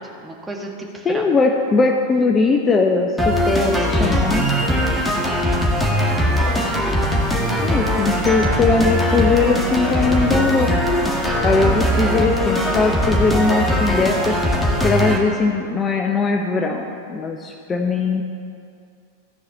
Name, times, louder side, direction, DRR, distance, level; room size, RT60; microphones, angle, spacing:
voice 1, 0.2-1.2 3.8-4.3 5.8-6.7, right 2 dB, 10° right, 0 dB, 1.8 m, -33 dB
voice 2, 1.0-4.5 7.6-10.7 11.0-11.1 11.4-14.6 14.8-18.2, left 4 dB, 25° left, 3 dB, 0.8 m, -20 dB
sound 1, 3.2-15.2, equal, 5° left, 1.9 m, -20 dB
14.0 x 4.9 x 7.1 m, 2.4 s
hypercardioid pair, 95°, 0 cm